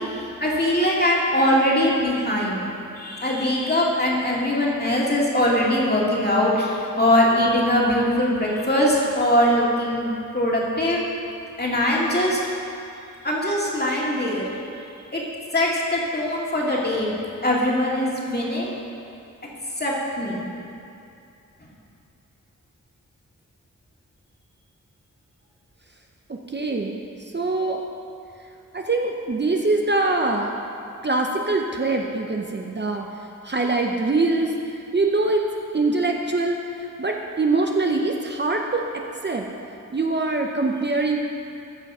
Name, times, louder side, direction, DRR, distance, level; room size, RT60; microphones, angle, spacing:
voice 1, 0.0-2.6 3.0-11.0 11.6-12.4 13.2-14.5 15.1-15.2 15.5-17.1 17.4-18.7 19.8-20.5, left 1 dB, 30° left, -4 dB, 2.2 m, -22 dB
voice 2, 26.5-27.0 27.3-27.8 28.7-30.5 31.0-33.1 33.4-34.5 34.9-35.4 35.7-38.8 39.2-39.5 39.9-41.2, right 3 dB, 35° right, 1 dB, 0.8 m, -23 dB
14.0 x 6.1 x 5.5 m, 2.6 s
wide cardioid pair, 85°, 32 cm